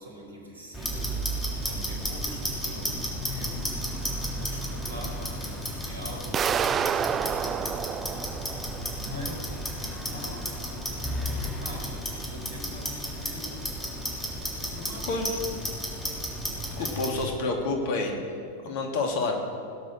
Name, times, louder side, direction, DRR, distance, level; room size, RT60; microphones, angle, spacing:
voice 1, 0.0-3.9 4.4-8.1 8.9-10.6 10.9-15.4 16.7-16.9, equal, 70° right, 0 dB, 4.1 m, -44 dB
Clock, 0.7-17.2, equal, 10° left, 3.4 m, -33 dB
sound 1, 6.3-9.2, right 8 dB, 25° right, 0.4 m, -29 dB
voice 2, 16.8-18.2 18.6-19.3, left 3 dB, 50° left, 2 dB, 2.7 m, -28 dB
18.0 x 9.8 x 6.5 m, 2.3 s
figure-of-eight pair, 90°, 0 cm